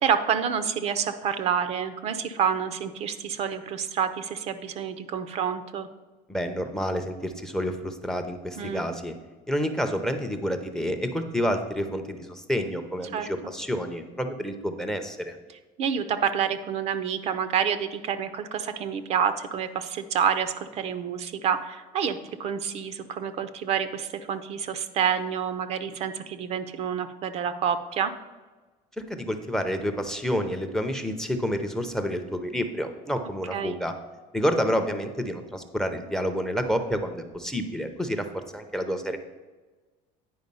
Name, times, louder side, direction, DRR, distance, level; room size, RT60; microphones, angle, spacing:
voice 1, 0.0-5.9 8.6-8.8 13.1-13.3 15.8-28.1 33.5-33.8, right 7 dB, 45° right, 11 dB, 0.5 m, -28 dB
voice 2, 6.3-9.1 9.5-15.4 29.1-33.9 34.3-38.3 38.5-39.2, equal, 5° left, 8 dB, 0.5 m, -29 dB
9.4 x 4.7 x 5.4 m, 1.3 s
cardioid pair, 160°, 16 cm